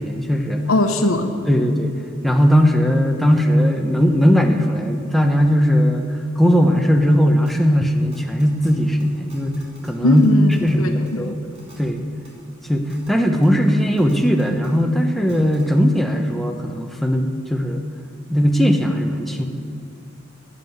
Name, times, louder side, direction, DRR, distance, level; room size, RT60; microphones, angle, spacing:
voice 1, 0.0-0.7 1.5-1.9 2.2-10.3 10.6-11.4 11.8-12.0 12.7-17.8 18.3-19.4, equal, ahead, 3 dB, 0.9 m, -18 dB
voice 2, 0.7-1.3 10.0-11.4, left 1 dB, 85° left, 5 dB, 0.9 m, -19 dB
sound 1, 7.5-7.6 8.1-8.7 9.0-9.1 9.3-9.9 10.2-10.7 11.1-11.2 11.5-11.7 12.2-12.3 12.9-13.1 13.4-13.5 14.0-14.7 15.3-15.6, right 1 dB, 30° right, 3.1 m, -44 dB
13.0 x 7.5 x 8.0 m, 2.4 s
head